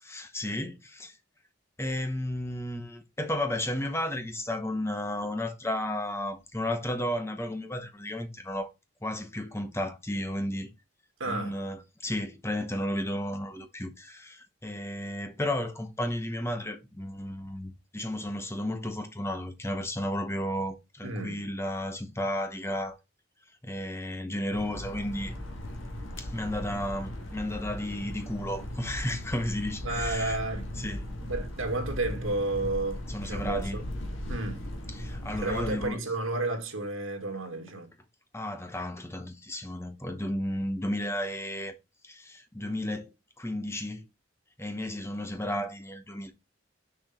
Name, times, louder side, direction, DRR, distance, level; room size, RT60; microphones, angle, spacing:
voice 1, 0.0-1.2 1.8-8.7 9.0-10.7 11.2-23.0 23.6-25.3 26.2-30.4 30.8-31.0 33.1-33.8 34.9-36.0 38.3-41.7 42.0-43.1 43.4-44.0 44.6-46.3, left 1 dB, 10° left, 0.9 m, -33 dB
voice 2, 11.2-11.6 21.0-21.4 29.8-30.9 31.2-33.8 34.3-34.6 35.4-37.9, right 2 dB, 70° right, 2.0 m, -32 dB
sound 1, 24.5-35.9, left 1 dB, 65° left, 1.5 m, -37 dB
6.3 x 4.4 x 4.3 m
head